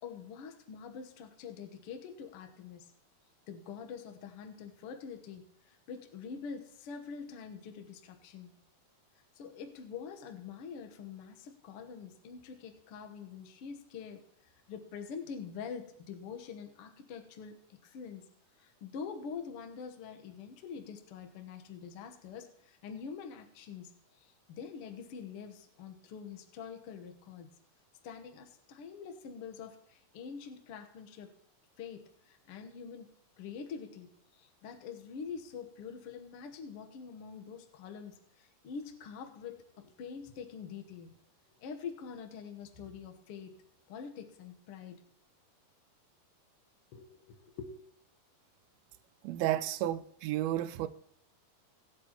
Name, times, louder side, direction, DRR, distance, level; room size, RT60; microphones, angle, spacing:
voice 1, 0.0-2.9 3.5-8.5 9.4-18.3 18.6-23.9 24.2-27.5 28.0-31.3 31.8-41.1 41.6-43.6 43.9-45.0 46.9-47.7, left 6 dB, 80° left, 1.2 m, -45 dB
voice 2, 49.2-50.9, right 13 dB, 85° right, 2.5 m, -32 dB
18.5 x 8.5 x 3.0 m
omnidirectional pair, 4.3 m